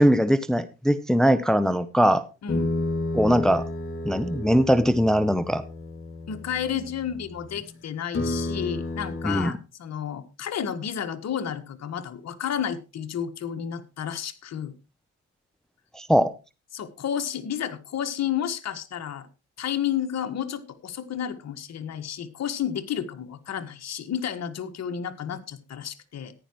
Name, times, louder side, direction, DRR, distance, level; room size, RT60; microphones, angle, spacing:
voice 1, 0.0-2.2 3.1-3.6 4.0-5.6 9.2-9.5 15.9-16.3, equal, ahead, 13 dB, 0.7 m, -21 dB
voice 2, 2.4-2.7 6.3-14.7 16.7-19.3 19.6-26.3, left 9 dB, 60° left, 8 dB, 1.6 m, -31 dB
sound 1, 2.5-7.7 8.1-9.4, left 2 dB, 45° left, 2.4 m, -31 dB
14.5 x 11.0 x 3.0 m, 0.29 s
cardioid pair, 90°, 30 cm